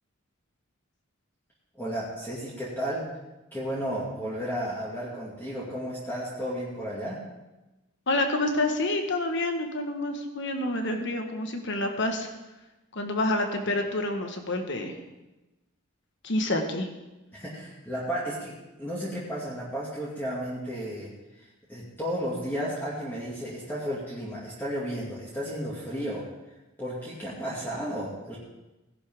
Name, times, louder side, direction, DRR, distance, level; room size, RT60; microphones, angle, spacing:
voice 1, 1.8-3.0 3.5-7.2 17.3-18.5 18.8-21.1 21.7-26.2 26.8-28.4, equal, 10° left, -7 dB, 2.4 m, -33 dB
voice 2, 8.1-12.3 12.9-14.9 16.2-16.9, left 2 dB, 60° left, 4 dB, 1.6 m, -28 dB
17.5 x 11.0 x 3.7 m, 1.0 s
head